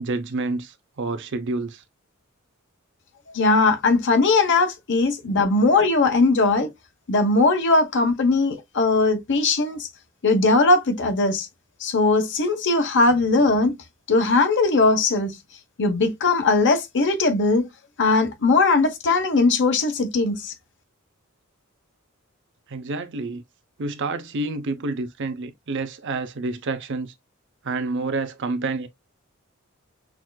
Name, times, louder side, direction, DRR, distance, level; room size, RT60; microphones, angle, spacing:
voice 1, 0.0-1.8 22.7-23.4 23.8-27.1 27.6-28.9, right 3 dB, 60° right, 0.6 m, -28 dB
voice 2, 3.3-6.7 7.1-9.9 10.2-11.5 11.8-13.7 14.1-15.4 15.8-17.7 18.0-20.5, left 3 dB, 60° left, 0.9 m, -19 dB
6.0 x 2.5 x 2.2 m
head